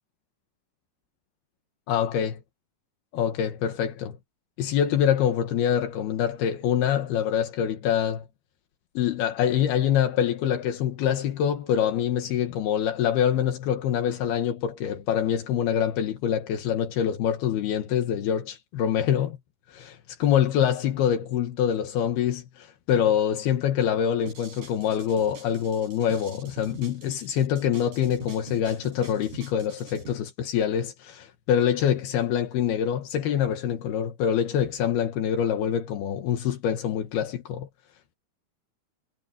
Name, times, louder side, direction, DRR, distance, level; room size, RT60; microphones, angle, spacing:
voice 1, 1.9-2.4 3.1-4.2 4.6-8.3 9.0-19.4 19.7-37.7, left 9 dB, 80° left, 3.6 m, -25 dB
sound 1, 24.3-30.1, right 3 dB, 60° right, 8.1 m, -45 dB
omnidirectional pair, 4.4 m